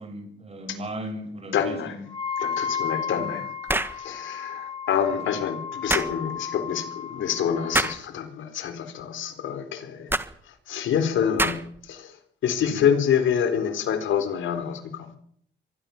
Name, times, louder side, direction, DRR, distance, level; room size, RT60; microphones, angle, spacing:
voice 1, 0.0-2.0 3.1-3.4 5.2-5.4 12.6-12.9, right 1 dB, 30° right, 6 dB, 6.4 m, -37 dB
voice 2, 1.5-1.9 2.4-3.5 3.9-10.1 10.5-12.2 12.4-15.1, left 8 dB, 75° left, 10 dB, 4.1 m, -27 dB
Wind instrument woodwind instrument, 2.1-8.0, left 7 dB, 25° left, 5.8 m, -33 dB
sound 1, 3.7-4.0 5.9-6.1 7.7-8.0 10.1-10.3 11.4-11.8, right 2 dB, 10° right, 1.6 m, -25 dB
25.0 x 20.0 x 7.3 m, 0.65 s
cardioid pair, 90°, 20 cm